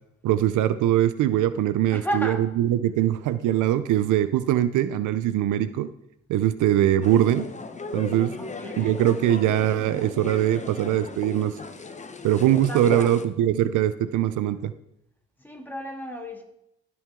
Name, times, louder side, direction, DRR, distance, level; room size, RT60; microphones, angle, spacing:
voice 1, 0.2-5.9 6.3-7.5 7.9-8.3 8.8-11.6 12.2-14.7, right 12 dB, 80° right, 13 dB, 0.6 m, -22 dB
voice 2, 1.9-2.5 8.4-9.0 12.6-13.1 15.4-16.4, equal, 5° left, 1 dB, 2.4 m, -33 dB
sound 1, 7.0-13.2, left 3 dB, 25° left, 0.9 m, -36 dB
17.5 x 6.1 x 3.7 m, 0.77 s
cardioid pair, 90°, 30 cm